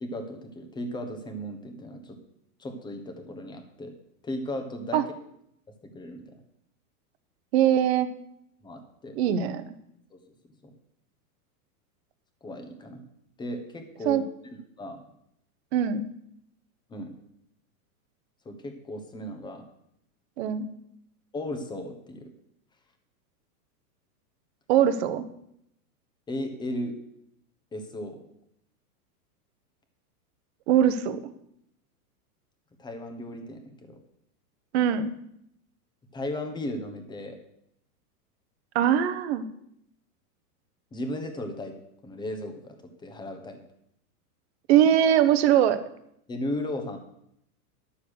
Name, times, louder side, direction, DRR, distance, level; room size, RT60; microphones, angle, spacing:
voice 1, 0.0-2.2 2.6-3.9 4.2-5.0 5.9-6.4 8.6-9.2 10.1-10.2 10.6-10.7 12.4-13.0 13.4-14.2 14.8-15.0 16.9-17.1 18.4-19.6 21.3-22.3 26.3-26.9 27.7-28.2 32.8-34.0 36.1-37.4 40.9-41.7 42.0-42.7 43.0-43.6 46.3-47.0, left 1 dB, 10° left, 5 dB, 1.2 m, -35 dB
voice 2, 7.5-8.1 9.2-9.6 14.0-14.2 15.7-16.0 20.4-20.7 24.7-25.2 30.7-31.2 34.7-35.1 38.7-39.4 44.7-45.8, right 10 dB, 45° right, 11 dB, 1.0 m, -21 dB
12.0 x 7.0 x 6.5 m, 0.76 s
supercardioid pair, 155°, 46 cm